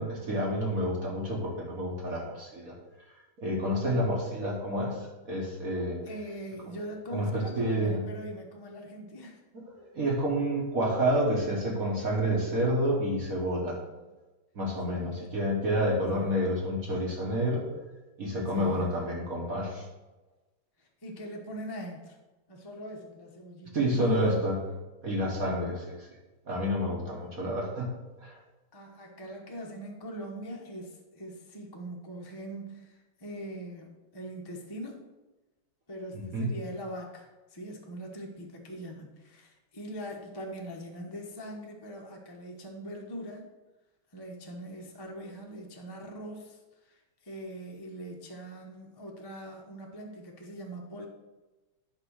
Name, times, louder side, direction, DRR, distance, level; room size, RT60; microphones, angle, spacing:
voice 1, 0.0-2.7 3.1-6.0 6.7-6.8 7.1-8.0 9.7-13.8 14.6-17.6 18.2-19.9 23.7-24.6 25.0-26.1 26.5-27.9 28.2-28.4 36.1-36.5, equal, 45° right, -2 dB, 1.8 m, -29 dB
voice 2, 6.0-9.4 13.9-14.1 14.9-15.3 16.1-16.3 18.5-18.9 20.8-22.2 22.5-24.5 27.2-27.3 28.7-35.1 35.9-43.5 44.1-51.1, right 1 dB, 20° left, 0 dB, 0.6 m, -42 dB
11.0 x 3.7 x 6.4 m, 1.1 s
omnidirectional pair, 2.3 m